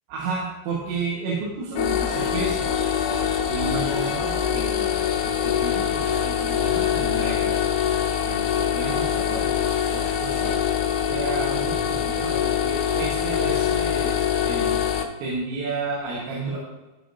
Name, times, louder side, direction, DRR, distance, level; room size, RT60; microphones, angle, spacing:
voice 1, 0.1-2.7 3.5-7.5 8.3-10.6 11.1-14.8 15.2-16.6, right 3 dB, 75° right, -4 dB, 3.7 m, -32 dB
sound 1, 1.8-15.0, left 9 dB, 90° left, 3.4 m, -24 dB
14.5 x 5.0 x 2.7 m, 1.1 s
omnidirectional pair, 5.4 m